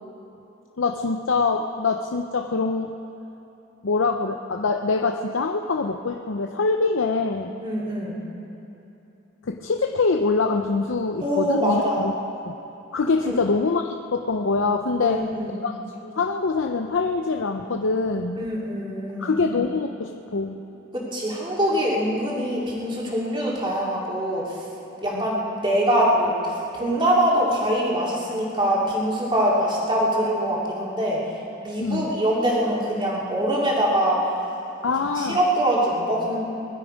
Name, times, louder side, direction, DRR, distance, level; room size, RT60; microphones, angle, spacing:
voice 1, 0.8-2.9 3.8-7.6 9.5-12.1 12.5-12.6 12.9-15.3 15.6-15.7 16.0-18.5 19.2-20.6 25.1-25.2 31.8-32.1 34.8-35.4, left 4 dB, 75° left, 3 dB, 0.6 m, -24 dB
voice 2, 7.6-8.2 11.2-12.1 13.3-13.4 15.0-15.6 18.4-19.4 20.9-24.6 25.0-31.2 31.6-34.2 35.1-36.4, equal, 25° right, -5 dB, 2.8 m, -23 dB
21.5 x 12.0 x 5.2 m, 3.0 s
head